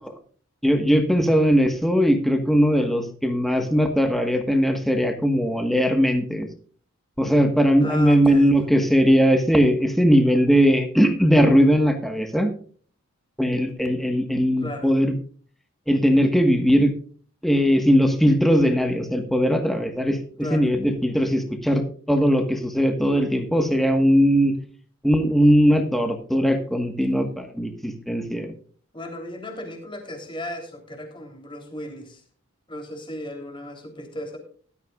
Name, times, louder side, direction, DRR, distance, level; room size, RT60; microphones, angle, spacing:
voice 1, 0.6-6.5 7.2-12.5 13.4-15.1 15.9-16.9 17.4-20.2 20.5-24.6 25.0-28.5, equal, ahead, 5 dB, 1.4 m, -19 dB
voice 2, 7.8-8.5 14.6-14.9 20.4-20.7 28.9-32.2 32.7-34.4, left 1 dB, 25° left, 4 dB, 3.3 m, -35 dB
16.5 x 12.5 x 2.4 m, 0.44 s
head